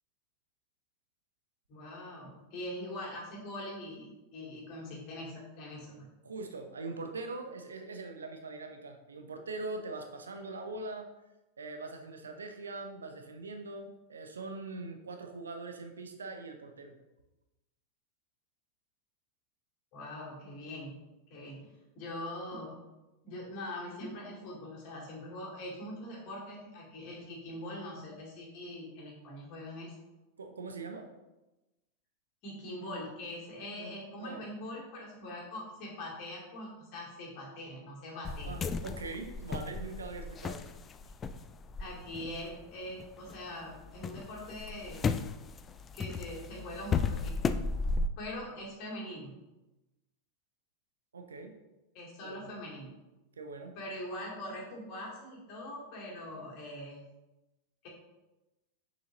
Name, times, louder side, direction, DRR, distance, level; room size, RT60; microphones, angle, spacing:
voice 1, 1.7-6.1 19.9-21.0 21.3-22.7 23.2-29.9 32.4-38.5 41.8-45.1 45.9-47.4 48.2-49.4 51.9-52.9 53.7-57.1 57.8-57.9, left 1 dB, 40° left, -3 dB, 2.4 m, -42 dB
voice 2, 6.2-11.1 11.6-17.0 30.4-31.1 33.7-33.9 34.2-34.4 38.4-40.7 51.1-51.6 52.2-52.5 53.4-53.8, right 3 dB, 70° right, 5 dB, 0.7 m, -42 dB
sound 1, 38.2-43.4 43.7-48.1, left 4 dB, 20° left, 0.3 m, -35 dB
6.4 x 6.1 x 3.0 m, 1.0 s
figure-of-eight pair, 90°, 0 cm